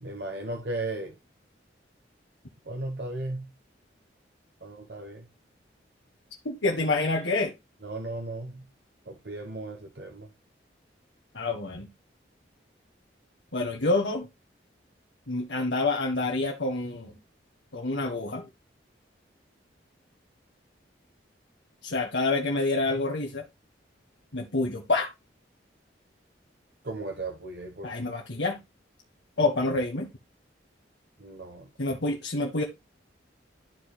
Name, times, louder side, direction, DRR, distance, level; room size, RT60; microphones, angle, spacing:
voice 1, 0.0-1.2 2.6-3.5 4.6-5.3 7.8-8.7 9.1-10.3 26.8-27.9 31.2-31.7, right 2 dB, 60° right, 1.2 m, -36 dB
voice 2, 6.4-7.5 11.3-11.9 13.5-14.3 15.3-17.1 17.7-18.4 21.8-23.4 24.3-25.1 27.8-28.6 29.4-30.1 31.8-32.6, left 2 dB, 75° left, 1.5 m, -27 dB
13.5 x 4.7 x 2.3 m
head